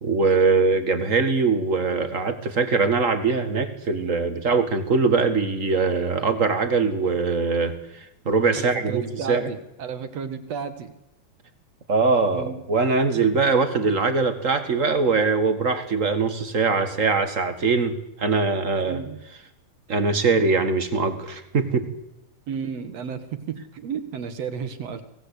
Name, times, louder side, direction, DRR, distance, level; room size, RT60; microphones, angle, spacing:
voice 1, 0.0-9.5 11.9-19.0 19.9-21.9, right 4 dB, 40° right, 9 dB, 1.2 m, -22 dB
voice 2, 8.6-10.9 12.3-12.6 18.9-19.2 22.5-25.0, right 6 dB, 55° right, 11 dB, 2.3 m, -32 dB
26.0 x 18.5 x 8.4 m, 0.88 s
omnidirectional pair, 4.1 m